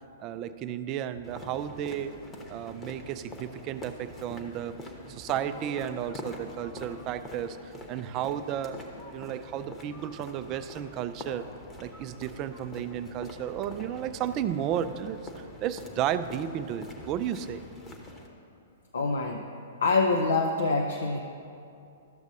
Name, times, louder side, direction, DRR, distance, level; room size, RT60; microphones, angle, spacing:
voice 1, 0.2-2.2 2.5-4.8 5.1-8.8 9.1-11.5 11.8-17.6, right 10 dB, 35° right, 12 dB, 0.3 m, -33 dB
sound 1, 1.2-18.3, left 1 dB, 15° left, 1.0 m, -44 dB
voice 2, 18.9-19.4 19.8-21.2, left 3 dB, 70° left, 2 dB, 0.5 m, -25 dB
12.5 x 6.9 x 2.7 m, 2.6 s
figure-of-eight pair, 110°, 0 cm